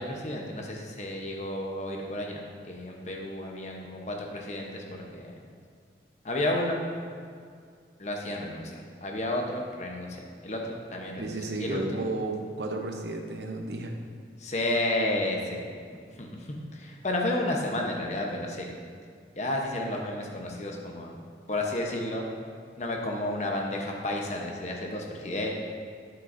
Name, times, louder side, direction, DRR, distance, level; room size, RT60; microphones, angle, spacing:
voice 1, 0.0-2.4 2.7-5.3 6.2-6.8 8.0-12.0 14.4-15.6 16.2-18.7 19.4-21.1 21.5-22.3 22.8-25.5, left 1 dB, 40° left, 0 dB, 0.9 m, -32 dB
voice 2, 11.2-13.9, right 2 dB, 75° right, 3 dB, 0.8 m, -33 dB
8.9 x 7.5 x 2.6 m, 2.2 s
head